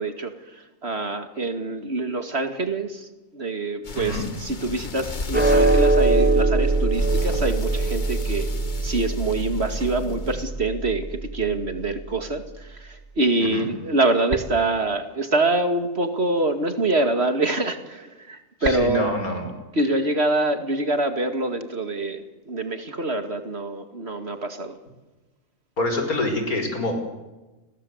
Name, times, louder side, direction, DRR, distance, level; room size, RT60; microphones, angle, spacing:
voice 1, 0.0-3.1 3.3-8.5 8.8-19.1 19.7-24.7, right 2 dB, 45° right, 8 dB, 2.5 m, -25 dB
sound 1, 3.8-10.5, left 3 dB, 35° left, 1.4 m, -35 dB
sound 2, 5.3-11.9, right 2 dB, 5° right, 4.2 m, -22 dB
voice 2, 18.6-19.4 25.8-27.1, left 1 dB, 90° left, 5 dB, 5.9 m, -26 dB
29.5 x 22.0 x 8.1 m, 1.1 s
omnidirectional pair, 1.5 m